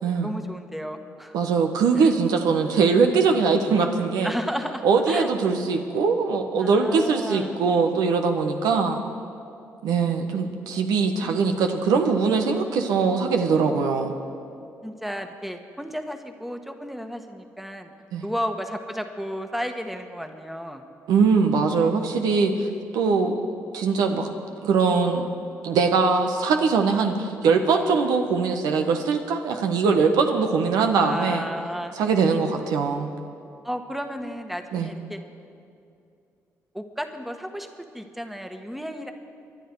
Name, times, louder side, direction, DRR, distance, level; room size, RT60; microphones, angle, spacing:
voice 1, 0.2-1.4 1.9-2.1 4.2-5.3 6.6-7.6 8.6-8.9 10.9-11.7 14.8-17.9 18.2-20.8 31.0-31.9 33.6-35.2 36.7-37.7 37.9-39.1, equal, 5° right, 6 dB, 1.4 m, -33 dB
voice 2, 1.3-4.3 4.8-9.0 9.8-14.1 18.1-18.3 21.1-22.7 22.9-23.3 23.7-24.3 24.6-25.3 25.6-31.5 31.9-33.1 34.7-34.9, right 5 dB, 80° right, 5 dB, 1.1 m, -22 dB
23.5 x 11.0 x 4.7 m, 2.5 s
supercardioid pair, 50°, 7 cm